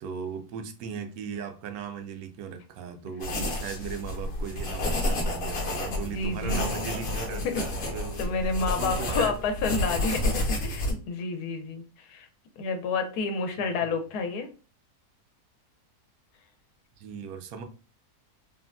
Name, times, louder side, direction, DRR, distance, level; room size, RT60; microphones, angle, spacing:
voice 1, 0.0-9.4 13.8-13.9 17.0-17.6, right 6 dB, 70° right, 7 dB, 1.0 m, -38 dB
sound 1, 3.2-10.9, left 1 dB, 50° left, 0.8 m, -30 dB
voice 2, 6.1-6.7 7.4-7.6 8.2-12.3 12.6-14.5, left 4 dB, 75° left, 5 dB, 1.1 m, -30 dB
3.6 x 2.1 x 2.3 m, 0.35 s
omnidirectional pair, 1.7 m